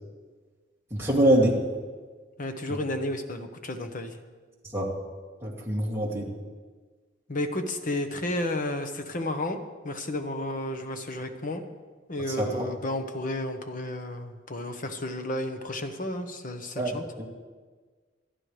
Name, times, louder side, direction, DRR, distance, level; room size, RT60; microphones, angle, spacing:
voice 1, 0.9-1.6 4.7-4.9 5.4-6.3 12.4-12.7 16.8-17.3, right 1 dB, 15° right, -5 dB, 2.7 m, -24 dB
voice 2, 2.4-4.2 7.3-11.6 12.1-17.0, left 1 dB, 45° left, 6 dB, 1.1 m, -32 dB
26.5 x 9.7 x 3.4 m, 1.4 s
head